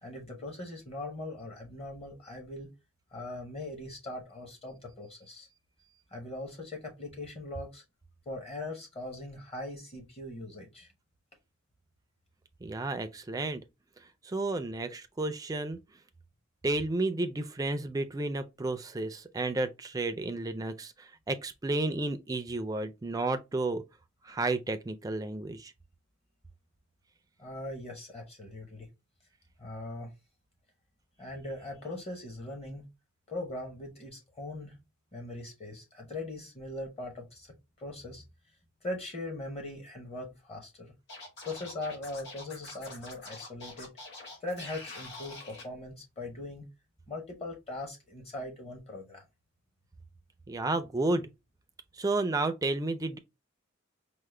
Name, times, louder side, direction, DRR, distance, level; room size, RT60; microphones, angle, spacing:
voice 1, 0.0-2.7 3.1-5.5 6.1-7.8 8.3-10.9 27.4-28.9 29.6-30.1 31.2-32.8 33.3-34.8 35.1-38.2 38.8-40.9 41.4-43.9 44.4-46.6 47.1-49.2, left 2 dB, 30° left, 0.8 m, -40 dB
voice 2, 12.6-13.6 14.2-15.8 16.6-23.8 24.2-25.7 50.5-51.3 52.0-53.2, right 2 dB, 15° right, 0.3 m, -32 dB
Scratching (performance technique), 41.1-45.6, left 3 dB, 55° left, 1.6 m, -45 dB
4.7 x 2.1 x 3.2 m
head